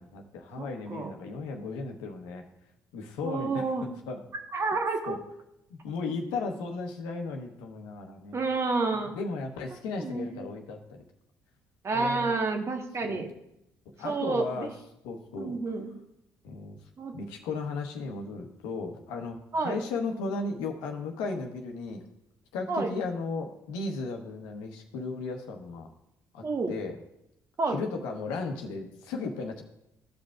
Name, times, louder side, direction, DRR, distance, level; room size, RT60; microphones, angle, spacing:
voice 1, 0.0-2.4 2.9-4.3 5.1-5.2 5.7-8.4 9.1-11.0 11.9-12.3 13.0-13.2 14.0-14.7 15.0-15.6 16.4-16.8 17.1-22.0 22.5-25.9 26.3-27.0 27.7-29.6, left 3 dB, 90° left, 3 dB, 1.0 m, -35 dB
voice 2, 0.6-1.1 3.2-3.9 4.5-5.2 8.3-9.1 10.0-10.5 11.8-13.3 14.0-14.7 15.4-15.9 17.0-17.1 19.5-19.8 22.7-22.9 26.4-26.7 27.6-27.8, right 3 dB, 40° right, 4 dB, 1.3 m, -29 dB
15.0 x 5.2 x 2.4 m, 0.84 s
supercardioid pair, 70°, 7 cm